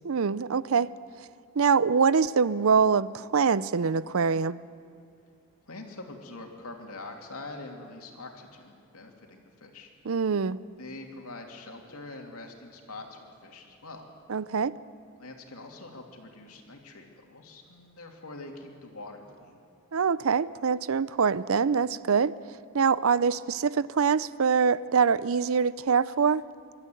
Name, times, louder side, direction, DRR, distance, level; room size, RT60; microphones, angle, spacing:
voice 1, 0.0-0.9 1.6-4.6 10.1-10.6 14.3-14.7 19.9-22.3 22.7-26.4, right 6 dB, 75° right, 18 dB, 0.5 m, -24 dB
voice 2, 5.7-9.9 10.8-14.0 15.2-19.6, left 2 dB, 90° left, 2 dB, 3.0 m, -44 dB
25.0 x 13.0 x 9.3 m, 2.6 s
head